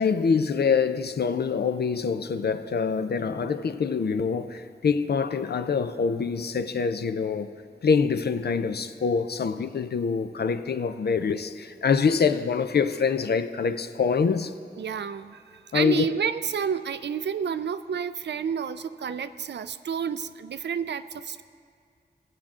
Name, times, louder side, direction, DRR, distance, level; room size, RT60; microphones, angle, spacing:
voice 1, 0.0-7.5 7.8-14.5 15.7-16.0, left 5 dB, 70° left, 0.5 m, -25 dB
voice 2, 14.8-21.4, right 7 dB, 80° right, 0.4 m, -30 dB
17.0 x 7.4 x 3.7 m
wide cardioid pair, 70°, 18 cm